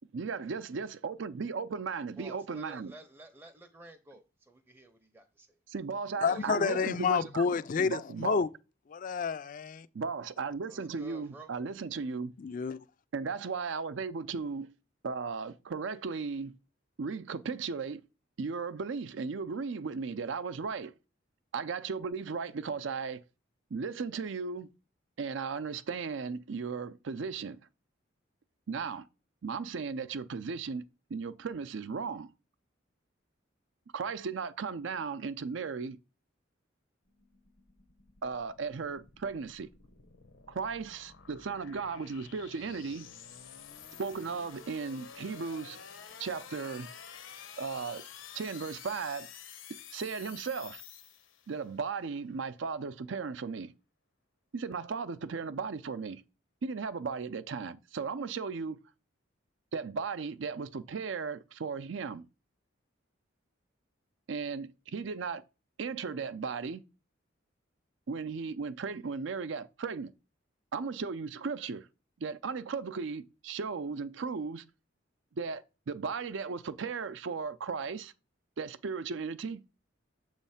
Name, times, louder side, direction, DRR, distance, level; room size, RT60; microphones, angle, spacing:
voice 1, 0.1-2.9 5.7-7.5 7.8-8.5 9.9-12.3 13.1-14.7 15.0-16.5 17.0-18.0 18.4-20.9 21.5-23.2 23.7-24.7 25.2-27.6 28.7-29.1 29.4-30.8 31.1-32.3 33.9-36.0 38.2-39.7 40.5-43.1 44.0-45.8 46.2-46.9 47.6-48.0 48.3-49.3 49.9-50.8 51.5-53.7 54.5-56.2 56.6-58.8 59.7-62.2 64.3-65.4 65.8-66.8 68.1-70.1 70.7-71.9 72.2-74.6 75.3-78.1 78.6-79.6, right 5 dB, 70° right, 0.5 m, -36 dB
voice 2, 2.2-5.5 6.2-7.2 10.7-11.5, right 1 dB, 10° right, 0.6 m, -51 dB
voice 3, 6.2-8.5 8.9-9.9 12.4-12.8, left 5 dB, 45° left, 0.4 m, -29 dB
sound 1, 37.1-51.7, left 7 dB, 80° left, 0.9 m, -50 dB
7.1 x 3.2 x 5.6 m
head